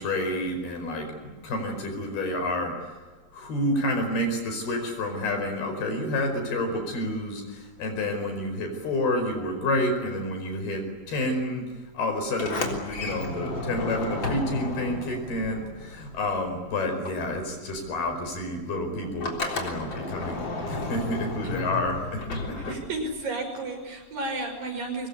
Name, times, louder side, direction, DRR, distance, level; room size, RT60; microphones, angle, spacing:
voice 1, 0.0-2.7 3.3-10.8 11.1-11.7 11.9-22.8, left 1 dB, 60° left, 5 dB, 6.8 m, -29 dB
Sliding door, 12.3-16.6 16.8-23.2, left 2 dB, 30° left, 3.8 m, -33 dB
voice 2, 22.5-25.1, right 2 dB, 50° right, 3 dB, 7.4 m, -33 dB
24.5 x 21.5 x 9.9 m, 1.3 s
omnidirectional pair, 5.0 m